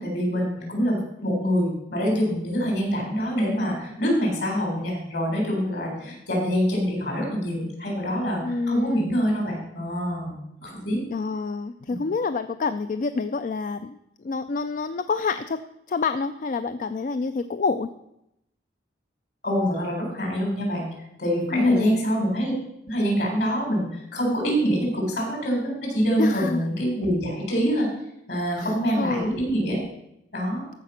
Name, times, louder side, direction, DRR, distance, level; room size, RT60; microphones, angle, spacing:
voice 1, 0.0-11.0 11.9-12.0 19.4-20.9 21.2-22.5 22.9-27.9 28.3-29.8 30.3-30.6, equal, 65° left, 0 dB, 4.1 m, -25 dB
voice 2, 8.4-9.1 11.1-14.0 14.2-15.6 15.9-17.9 21.5-22.0 26.2-26.6 28.6-29.4, left 4 dB, 45° left, 11 dB, 0.3 m, -27 dB
14.0 x 5.0 x 5.8 m, 0.82 s
head